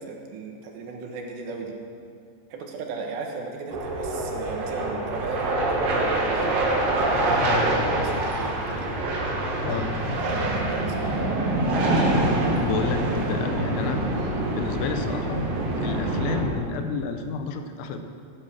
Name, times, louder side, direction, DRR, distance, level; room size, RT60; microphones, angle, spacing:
voice 1, 0.0-1.8 2.5-7.6 7.8-8.9 10.1-11.2, right 4 dB, 75° right, 1 dB, 3.5 m, -35 dB
sound 1, 3.7-16.4, right 1 dB, 60° right, 3.3 m, -25 dB
voice 2, 12.5-15.4 15.8-18.0, left 5 dB, 85° left, 6 dB, 3.2 m, -30 dB
16.0 x 10.5 x 6.1 m, 2.3 s
omnidirectional pair, 5.1 m